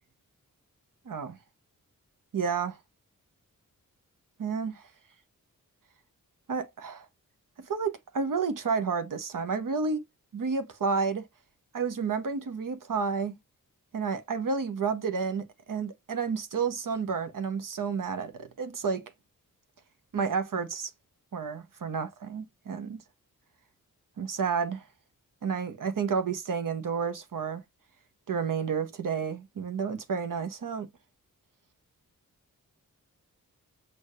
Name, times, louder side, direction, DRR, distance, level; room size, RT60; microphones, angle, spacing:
voice 1, 1.1-1.4 2.3-2.8 4.4-4.8 6.5-7.1 7.7-10.0 10.3-11.3 11.7-13.4 13.9-19.0 20.1-20.9 21.3-23.0 24.2-24.8 25.4-27.6 28.3-30.9, right 5 dB, 70° right, 0.9 m, -30 dB
6.5 x 2.6 x 2.5 m
wide cardioid pair, 75°, 33 cm